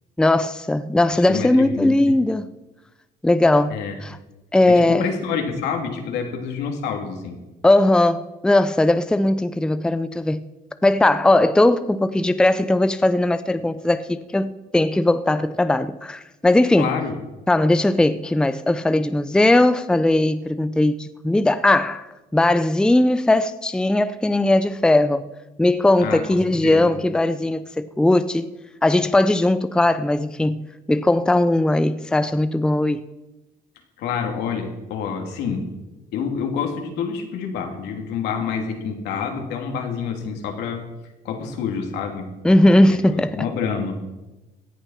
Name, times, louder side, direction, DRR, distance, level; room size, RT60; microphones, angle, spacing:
voice 1, 0.2-2.5 3.2-4.2 4.5-5.0 7.6-10.4 10.8-16.9 17.5-22.1 22.3-25.2 25.6-28.4 28.8-33.0 42.4-43.4, left 1 dB, 5° left, 0.5 m, -18 dB
voice 2, 1.3-2.2 3.7-4.0 4.7-7.4 16.8-17.2 26.0-26.9 34.0-35.7 36.1-40.8 41.2-42.3 42.9-44.0, left 6 dB, 85° left, 3.0 m, -28 dB
17.0 x 10.5 x 5.8 m
cardioid pair, 110°, 17 cm